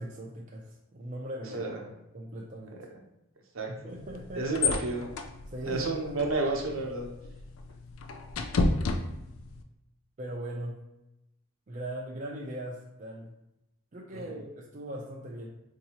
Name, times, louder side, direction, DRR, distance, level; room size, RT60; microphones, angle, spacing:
voice 1, 0.0-1.8 2.1-2.9 3.8-4.5 5.5-6.4 10.2-10.8 11.7-13.3 13.9-15.5, right 1 dB, 35° right, -2 dB, 0.4 m, -39 dB
sound 1, 3.9-9.6, left 3 dB, 70° left, 0.4 m, -33 dB
voice 2, 4.4-5.1 5.7-7.1 14.1-14.3, right 3 dB, 70° right, 0 dB, 0.8 m, -31 dB
4.6 x 2.7 x 2.9 m, 0.91 s
head